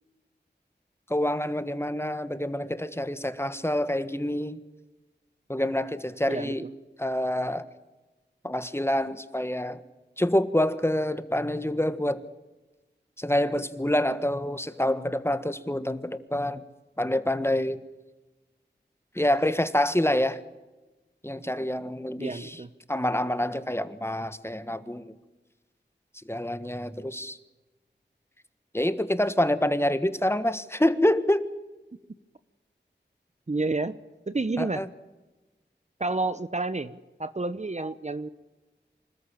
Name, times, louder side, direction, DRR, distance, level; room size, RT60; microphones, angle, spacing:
voice 1, 1.1-4.6 5.5-6.6 7.0-7.6 8.4-9.8 10.2-12.2 13.2-16.6 17.0-17.8 19.1-20.4 21.2-22.6 22.9-25.2 26.2-27.4 28.7-31.5 34.6-34.9, left 1 dB, 15° left, 13 dB, 1.5 m, -27 dB
voice 2, 22.2-22.7 33.5-34.0 34.3-34.8 36.0-38.3, right 3 dB, 40° right, 13 dB, 0.9 m, -30 dB
25.5 x 13.5 x 8.9 m, 1.1 s
wide cardioid pair, 40°, 19 cm